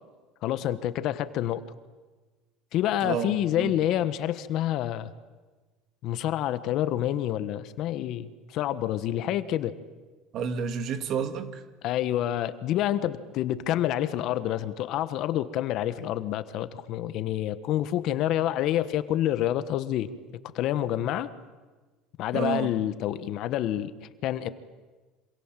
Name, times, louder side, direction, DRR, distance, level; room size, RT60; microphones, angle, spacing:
voice 1, 0.4-1.6 2.7-5.1 6.0-9.8 11.8-20.1 20.5-21.3 22.2-23.9 24.2-24.5, left 12 dB, 55° left, 13 dB, 1.4 m, -28 dB
voice 2, 3.0-3.7 10.3-11.6 22.3-22.7, right 7 dB, 50° right, 9 dB, 2.2 m, -30 dB
26.5 x 26.5 x 7.6 m, 1.3 s
cardioid pair, 130°, 0 cm